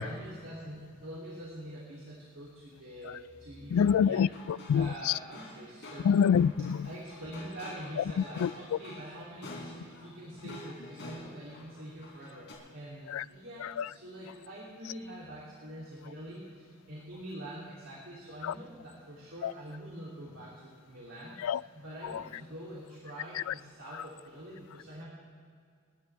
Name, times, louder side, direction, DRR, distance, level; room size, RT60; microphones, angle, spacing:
voice 1, 0.0-4.3 4.7-6.1 6.8-25.0, right 1 dB, 75° right, 3.1 m, -45 dB
voice 2, 3.7-5.1 6.0-6.9 8.2-8.5 13.1-13.2 13.8-13.9 18.4-18.5 19.4-19.5 21.4-21.6 23.4-23.5, left 7 dB, 80° left, 0.3 m, -26 dB
sound 1, 3.7-12.5, left 1 dB, 60° left, 3.8 m, -49 dB
29.5 x 11.0 x 3.5 m
head